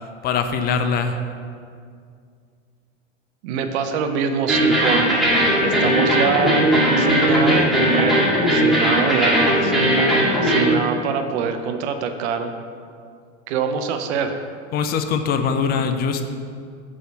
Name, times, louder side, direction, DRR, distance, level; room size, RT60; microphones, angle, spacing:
voice 1, 0.2-1.2 14.7-16.2, left 6 dB, 25° left, 7 dB, 0.4 m, -22 dB
voice 2, 3.4-5.2 5.6-8.2 8.5-9.7 10.4-12.5 13.5-14.4, right 6 dB, 60° right, 7 dB, 0.8 m, -24 dB
sound 1, 4.5-10.7, equal, ahead, 1.7 m, -18 dB
5.0 x 4.8 x 6.2 m, 2.2 s
hypercardioid pair, 110°, 38 cm